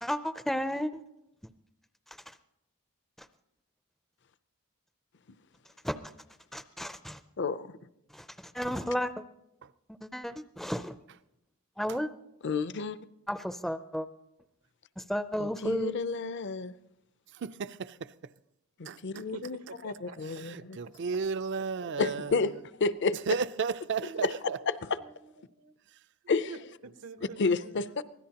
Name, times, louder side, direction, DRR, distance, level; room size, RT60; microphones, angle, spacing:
voice 1, 0.0-1.0 5.8-6.0 6.5-7.2 8.1-8.3 8.5-9.1 10.0-10.9 11.8-12.1 13.3-14.1 15.0-16.0, equal, ahead, 0.4 m, -32 dB
voice 2, 7.4-7.8 12.4-13.0 15.4-16.7 18.8-20.8 22.0-22.5 22.8-23.1 24.2-24.3 26.3-26.5 27.4-28.0, left 4 dB, 55° left, 0.6 m, -30 dB
voice 3, 17.3-18.3 18.8-19.2 20.2-22.6 23.3-24.6 25.9-26.0, right 5 dB, 55° right, 0.4 m, -34 dB
voice 4, 19.1-20.4 24.0-24.5 25.0-25.3 25.6-25.7 26.4-27.8, right 4 dB, 80° right, 0.9 m, -46 dB
24.0 x 17.0 x 2.9 m
head